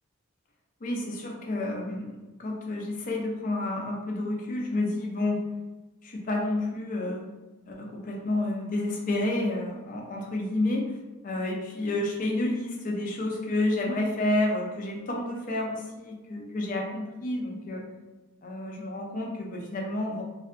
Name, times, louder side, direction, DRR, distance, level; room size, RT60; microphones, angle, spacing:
voice 1, 0.8-5.4 6.0-7.2 7.7-10.9 11.2-17.8 18.4-20.2, left 2 dB, 40° left, -1 dB, 0.5 m, -30 dB
2.6 x 2.2 x 2.4 m, 1.1 s
head